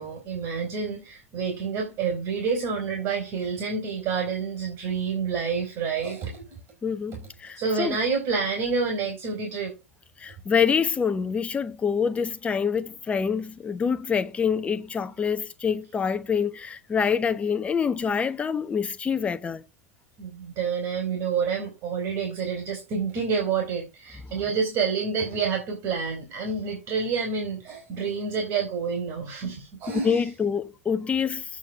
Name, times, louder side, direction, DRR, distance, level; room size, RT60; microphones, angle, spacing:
voice 1, 0.0-6.4 7.6-9.7 20.2-30.3, right 5 dB, 40° right, 3.9 m, -28 dB
voice 2, 6.8-8.0 10.2-19.6 30.0-31.4, left 6 dB, 20° left, 1.1 m, -26 dB
8.7 x 4.6 x 7.4 m
figure-of-eight pair, 90°, 7 cm